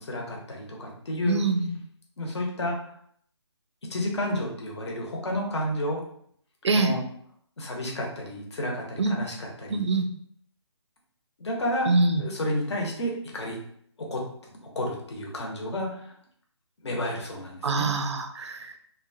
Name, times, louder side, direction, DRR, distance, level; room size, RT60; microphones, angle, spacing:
voice 1, 0.1-1.4 2.2-2.8 3.9-6.0 6.7-7.0 7.6-9.8 11.4-11.9 12.2-13.6 14.0-14.2 14.7-16.1 16.8-17.9, left 1 dB, 65° left, 0 dB, 1.0 m, -31 dB
voice 2, 1.2-1.8 6.6-6.9 9.0-9.2 9.7-10.1 11.9-12.2 17.6-18.8, right 3 dB, 70° right, 6 dB, 0.5 m, -24 dB
2.8 x 2.2 x 2.6 m, 0.65 s
figure-of-eight pair, 155°, 15 cm